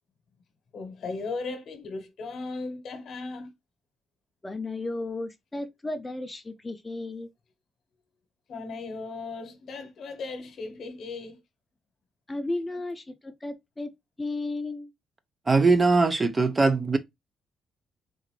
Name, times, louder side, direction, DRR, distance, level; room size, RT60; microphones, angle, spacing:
voice 1, 0.7-3.5 8.5-11.4, left 3 dB, 60° left, 0.9 m, -37 dB
voice 2, 4.4-7.3 12.3-13.9 14.2-14.9, left 2 dB, 15° left, 0.6 m, -34 dB
voice 3, 15.5-17.0, right 3 dB, 25° right, 0.5 m, -21 dB
3.9 x 2.5 x 3.0 m
cardioid pair, 90°, 0 cm